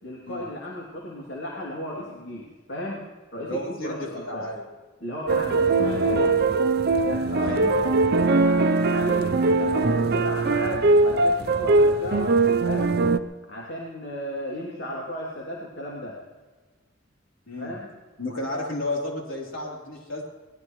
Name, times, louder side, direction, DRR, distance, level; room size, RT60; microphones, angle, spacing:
voice 1, 0.0-3.1 3.3-4.5 5.0-6.4 7.1-7.8 8.5-13.0 13.5-16.1 17.6-17.9, left 1 dB, 65° left, -4 dB, 2.8 m, -35 dB
voice 2, 3.4-4.6 5.4-5.6 7.4-7.9 9.0-9.2 17.5-17.7 18.2-20.2, left 1 dB, 90° left, -2 dB, 3.5 m, -32 dB
sound 1, 5.3-13.2, right 3 dB, 55° right, 0.6 m, -21 dB
23.5 x 19.0 x 3.1 m, 1.3 s
head